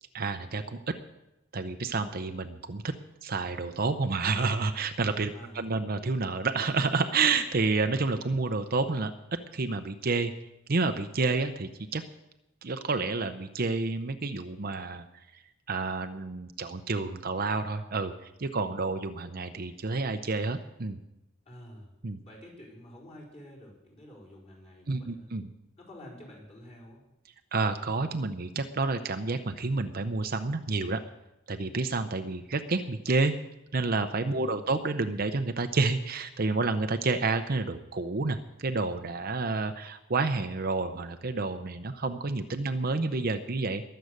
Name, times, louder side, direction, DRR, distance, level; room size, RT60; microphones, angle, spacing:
voice 1, 0.1-1.0 1.5-2.9 3.2-10.3 10.7-12.0 12.6-15.0 15.7-18.1 18.4-21.0 22.0-22.2 24.9-25.5 27.5-31.0 31.5-33.4 33.7-43.8, right 3 dB, 45° right, 8 dB, 0.7 m, -29 dB
voice 2, 5.3-5.7 21.4-21.9 22.2-25.3 25.8-27.0 34.3-34.7, equal, 30° left, -3 dB, 4.8 m, -49 dB
22.0 x 7.9 x 6.6 m, 0.91 s
head